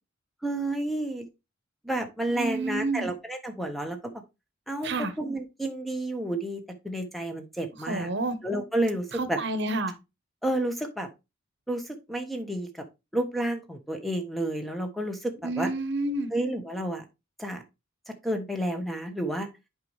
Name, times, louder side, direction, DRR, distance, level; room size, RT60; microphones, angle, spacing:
voice 1, 0.4-1.3 1.8-4.1 4.7-4.9 5.2-8.1 8.4-9.4 10.4-11.1 11.7-12.8 13.1-15.7 16.3-17.0 17.4-17.6 18.2-19.5, right 1 dB, ahead, 1.1 m, -30 dB
voice 2, 2.3-3.1 4.8-5.1 7.9-8.4 9.2-9.9 15.4-16.3, right 2 dB, 60° right, 1.0 m, -29 dB
8.0 x 5.3 x 3.2 m
head